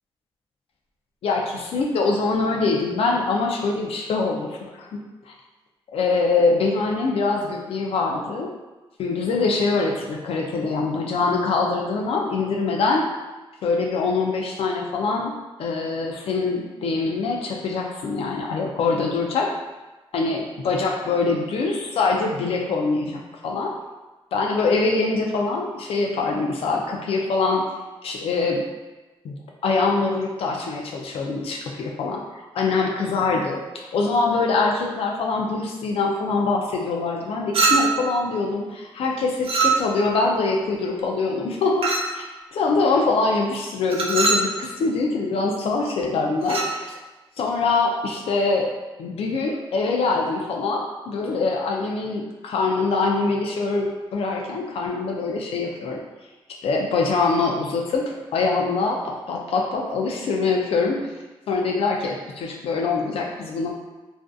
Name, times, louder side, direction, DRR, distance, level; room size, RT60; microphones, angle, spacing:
voice 1, 1.2-4.9 5.3-5.4 5.9-8.5 9.0-13.1 13.6-15.3 15.6-19.5 20.1-23.7 24.3-27.6 28.0-28.6 29.2-32.2 32.5-41.9 42.1-42.2 42.5-46.9 47.4-48.7 49.0-56.0 56.6-61.0 61.5-63.7, left 3 dB, 75° left, 0 dB, 0.4 m, -24 dB
Chink clink, 37.5-38.1 39.4-40.1 41.8-42.2 43.9-44.5 46.4-46.8, right 4 dB, 70° right, 0.5 m, -22 dB
2.5 x 2.4 x 2.3 m, 1.2 s
cardioid pair, 75°, 10 cm